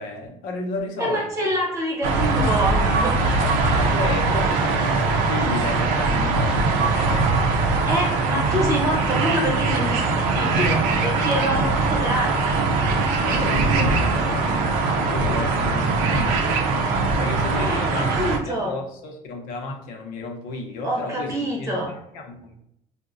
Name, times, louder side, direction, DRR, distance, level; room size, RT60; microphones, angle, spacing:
voice 1, 0.0-1.5 3.4-7.3 13.2-16.6 17.1-22.5, left 3 dB, 80° left, 2 dB, 0.6 m, -33 dB
voice 2, 1.0-3.5 7.9-12.7 17.6-18.7 20.8-21.9, right 1 dB, 20° right, -2 dB, 0.9 m, -26 dB
sound 1, 2.0-18.4, right 3 dB, 85° right, 0.5 m, -21 dB
3.8 x 2.1 x 2.5 m, 0.76 s
cardioid pair, 150°, 14 cm